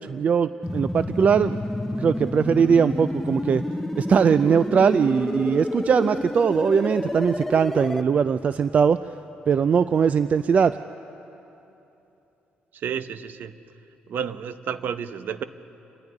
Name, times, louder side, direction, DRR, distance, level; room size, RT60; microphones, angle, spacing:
voice 1, 0.0-1.6 2.0-3.6 3.9-9.0 9.5-10.8, right 6 dB, 40° right, 13 dB, 0.4 m, -20 dB
High Score Fill - Ascending Faster, 0.6-8.0, left 1 dB, 10° left, 0.7 m, -29 dB
voice 2, 12.7-13.6 14.1-15.4, right 7 dB, 65° right, 12 dB, 0.8 m, -31 dB
29.0 x 11.0 x 9.9 m, 2.9 s
cardioid pair, 120°, 4 cm